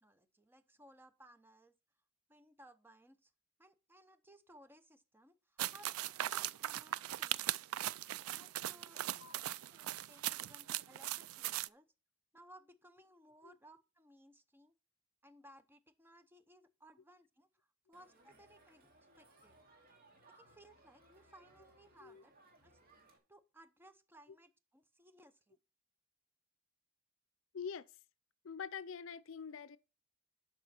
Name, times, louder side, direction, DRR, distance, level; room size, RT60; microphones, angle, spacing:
voice 1, 0.0-1.7 2.3-3.3 3.6-7.5 8.3-9.0 9.7-11.9 12.3-14.7 15.2-19.6 20.4-22.3 22.6-22.8 23.3-25.6, right 1 dB, 10° right, 0.7 m, -62 dB
sound 1, 5.6-11.7, right 13 dB, 85° right, 0.4 m, -39 dB
Crowd, 17.9-23.2, right 2 dB, 45° right, 2.5 m, -65 dB
voice 2, 27.5-27.9 28.4-29.8, left 6 dB, 65° left, 0.5 m, -45 dB
11.5 x 6.0 x 4.3 m
head